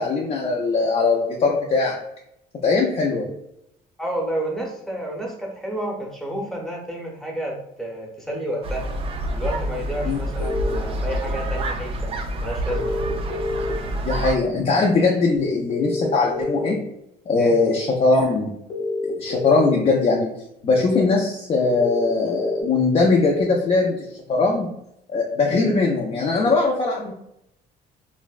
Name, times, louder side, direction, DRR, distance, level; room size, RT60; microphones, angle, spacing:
voice 1, 0.0-2.0 2.6-3.3 10.1-10.2 14.1-16.8 17.3-18.5 19.2-20.3 20.6-24.7 25.1-27.1, left 3 dB, 35° left, -1 dB, 0.4 m, -20 dB
voice 2, 4.0-8.9 9.3-12.1 12.4-13.0 17.4-17.5, right 1 dB, ahead, -2 dB, 0.8 m, -30 dB
sound 1, 8.6-14.3, right 1 dB, 35° right, 0.3 m, -27 dB
sound 2, 10.4-10.7 12.7-13.7 15.7-16.7 18.7-19.7 21.7-22.6, left 2 dB, 60° left, 0.7 m, -27 dB
3.1 x 2.1 x 2.3 m, 0.79 s
cardioid pair, 110°, 17 cm